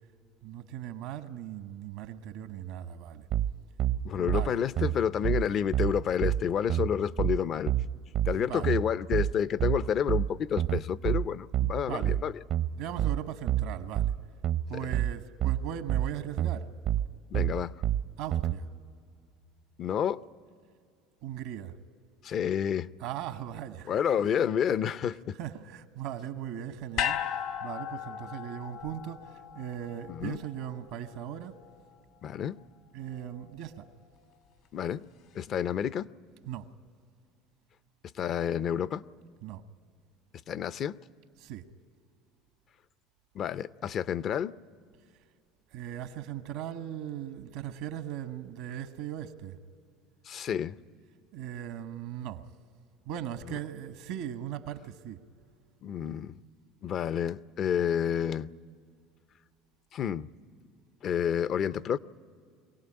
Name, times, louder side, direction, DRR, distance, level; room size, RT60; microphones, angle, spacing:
voice 1, 0.4-3.2 4.1-4.6 8.4-8.7 11.9-12.2 12.8-14.1 14.7-16.7 18.2-18.7 21.2-21.8 23.0-23.9 25.4-27.2 27.6-31.6 32.9-33.9 36.4-36.7 39.4-39.6 41.4-41.6 45.7-49.6 51.3-52.4 53.1-55.2, right 10 dB, 80° right, 1.0 m, -38 dB
sound 1, 3.3-18.6, right 12 dB, 60° right, 0.6 m, -28 dB
voice 2, 4.0-7.7 8.3-12.3 14.8-14.9 17.3-17.7 19.8-20.2 22.2-22.9 23.9-25.4 30.1-30.4 32.2-32.6 34.7-35.1 35.3-36.1 38.2-39.0 40.5-41.0 43.3-44.5 50.3-50.8 55.8-56.4 56.8-58.5 59.9-60.3 61.0-62.0, left 8 dB, 45° left, 0.5 m, -29 dB
sound 2, 27.0-31.3 31.6-31.7, left 10 dB, 65° left, 1.7 m, -36 dB
23.5 x 17.5 x 9.8 m
supercardioid pair, 95°, 0 cm